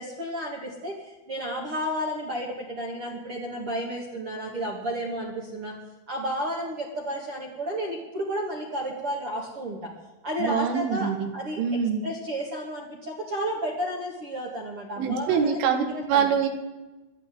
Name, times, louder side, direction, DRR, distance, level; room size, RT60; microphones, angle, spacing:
voice 1, 0.0-5.7 6.1-9.9 10.2-16.3, equal, 50° right, -1 dB, 1.7 m, -32 dB
voice 2, 10.4-11.3 11.6-12.0 15.0-16.5, right 7 dB, 80° right, 5 dB, 4.3 m, -24 dB
21.5 x 14.0 x 3.8 m, 1.1 s
omnidirectional pair, 5.6 m